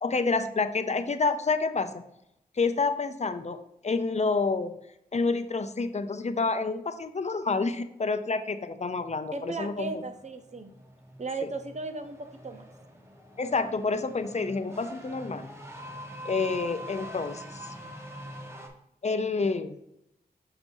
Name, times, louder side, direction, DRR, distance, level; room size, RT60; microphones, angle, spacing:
voice 1, 0.0-2.0 2.6-3.6 3.8-4.8 5.1-10.0 13.4-15.5 16.2-17.7 19.0-19.8, left 4 dB, 40° left, 10 dB, 0.6 m, -28 dB
voice 2, 9.3-10.7 11.2-12.7, right 3 dB, 45° right, 8 dB, 0.8 m, -36 dB
sound 1, 9.4-18.7, equal, 15° right, 1.3 m, -44 dB
6.6 x 6.0 x 2.7 m, 0.82 s
wide cardioid pair, 75°, 17 cm